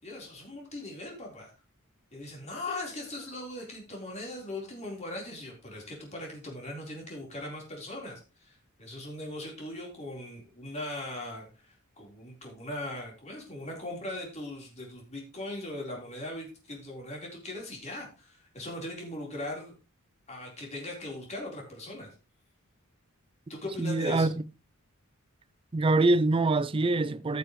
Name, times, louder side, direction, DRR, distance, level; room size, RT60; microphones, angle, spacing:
voice 1, 0.0-1.5 2.1-19.8 20.3-22.1 23.5-24.3, left 1 dB, 30° left, 3.8 m, -39 dB
voice 2, 23.8-24.3 25.7-27.4, right 2 dB, 25° right, 0.4 m, -24 dB
14.5 x 6.9 x 3.1 m
head